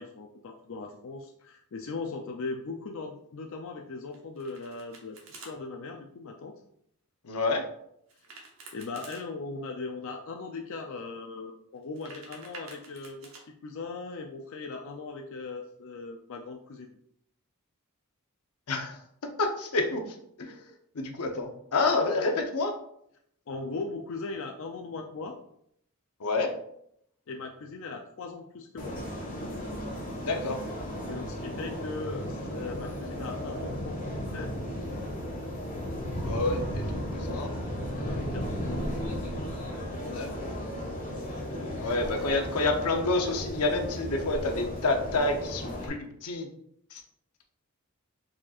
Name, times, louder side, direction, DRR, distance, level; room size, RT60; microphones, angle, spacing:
voice 1, 0.0-6.5 8.7-13.3 13.6-16.9 23.5-25.4 27.3-29.0 31.1-34.5 38.0-39.2 40.1-40.5 41.9-42.0, left 3 dB, 60° left, 2 dB, 0.4 m, -39 dB
Domestic sounds home sounds, 4.1-5.5 8.1-9.2 11.8-13.4, right 3 dB, 65° right, 1.2 m, -49 dB
voice 2, 7.2-7.7 18.7-19.0 19.4-20.6 20.9-22.7 26.2-26.5 30.2-30.6 36.2-37.5 40.1-40.5 41.8-46.5 46.9-47.0, left 3 dB, 85° left, 4 dB, 0.7 m, -29 dB
sound 1, 28.8-45.9, equal, 35° left, 1.4 m, -35 dB
4.8 x 4.3 x 2.4 m, 0.71 s
head